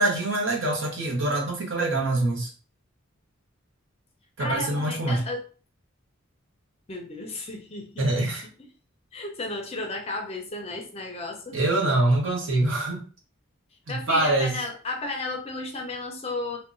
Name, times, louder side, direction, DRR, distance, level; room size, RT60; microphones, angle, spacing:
voice 1, 0.0-2.5 4.4-5.2 8.0-8.4 11.5-13.0 13.9-14.6, right 2 dB, 60° right, -1 dB, 0.9 m, -24 dB
voice 2, 4.4-5.5 6.9-8.3 9.1-11.6 13.9-16.6, left 2 dB, 30° left, 2 dB, 0.4 m, -33 dB
2.8 x 2.1 x 2.5 m, 0.38 s
head